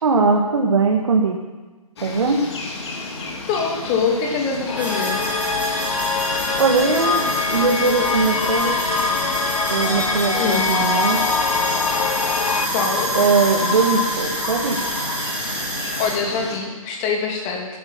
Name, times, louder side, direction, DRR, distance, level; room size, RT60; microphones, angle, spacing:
voice 1, 0.0-1.4 2.0-2.4 6.6-8.8 9.7-11.3 13.1-14.8, right 4 dB, 55° right, 1 dB, 1.6 m, -20 dB
sound 1, 2.0-16.6, left 3 dB, 45° left, 2.7 m, -30 dB
voice 2, 3.5-5.3 10.3-10.7 12.7-13.1 16.0-17.8, left 5 dB, 25° left, 1 dB, 2.4 m, -24 dB
sound 2, 4.7-12.7, left 6 dB, 70° left, 0.6 m, -24 dB
sound 3, 4.8-16.1, right 1 dB, 5° right, 3.3 m, -27 dB
13.5 x 11.5 x 5.8 m, 1.2 s
figure-of-eight pair, 140°, 19 cm